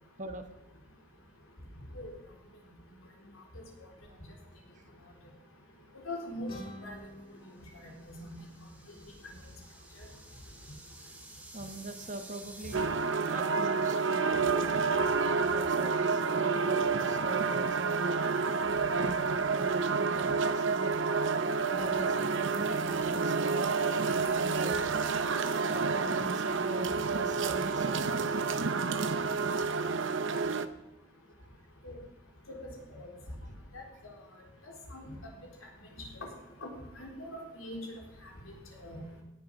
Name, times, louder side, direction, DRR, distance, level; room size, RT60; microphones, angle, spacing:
voice 1, 6.1-6.5 6.8-6.9 7.8-8.4 9.2-9.3 31.8-32.0 32.5-32.6 32.9-33.1 33.7-33.8 34.9-35.0 35.9-36.0 36.6-36.7 37.0-37.9 38.8-39.0, left 1 dB, 80° left, 1 dB, 3.6 m, -41 dB
sound 1, 6.5-9.2, equal, 25° left, 2.3 m, -50 dB
sound 2, 7.6-12.7, right 2 dB, 5° right, 1.7 m, -52 dB
voice 2, 11.5-13.0 13.3-14.3 15.4-18.3 18.9-20.9 21.7-25.1 25.6-28.4 31.4-31.5, right 2 dB, 35° right, 7 dB, 1.1 m, -42 dB
sound 3, 12.7-30.7, right 4 dB, 60° right, 0.7 m, -29 dB
17.0 x 7.8 x 6.3 m, 0.92 s
head